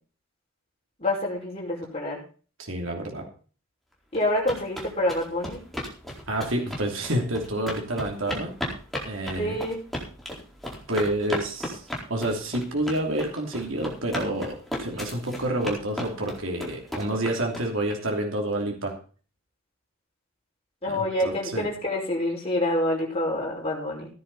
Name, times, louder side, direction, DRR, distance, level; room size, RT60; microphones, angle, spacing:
voice 1, 1.0-2.2 4.1-5.6 9.4-9.8 20.8-24.1, left 1 dB, 30° left, -3 dB, 5.4 m, -27 dB
voice 2, 2.6-3.3 6.3-8.5 9.1-9.6 10.9-11.8 12.1-18.9 20.9-21.7, right 1 dB, 65° right, 1 dB, 3.0 m, -28 dB
sound 1, 4.2-17.9, equal, ahead, 4.2 m, -35 dB
15.5 x 10.5 x 4.1 m, 0.39 s
head